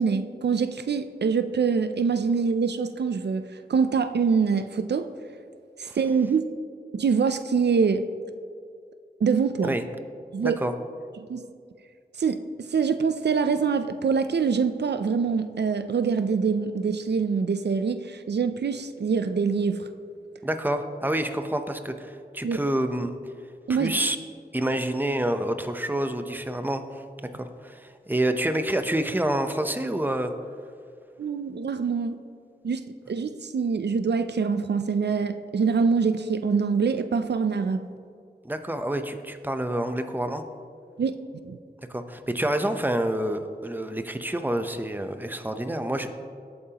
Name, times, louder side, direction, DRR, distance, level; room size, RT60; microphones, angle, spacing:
voice 1, 0.0-5.1 5.8-6.5 6.9-8.1 9.2-9.8 10.3-10.6 11.3-11.4 12.2-19.9 22.4-22.6 23.7-24.0 31.2-32.2 32.6-37.8 41.0-41.2 41.4-41.6, right 5 dB, 85° right, 10 dB, 0.5 m, -25 dB
voice 2, 10.4-10.7 20.4-23.1 23.7-24.2 24.5-30.3 38.4-40.5 41.9-46.1, right 1 dB, 10° right, 8 dB, 0.8 m, -28 dB
18.0 x 8.7 x 2.9 m, 2.2 s
wide cardioid pair, 70°, 17 cm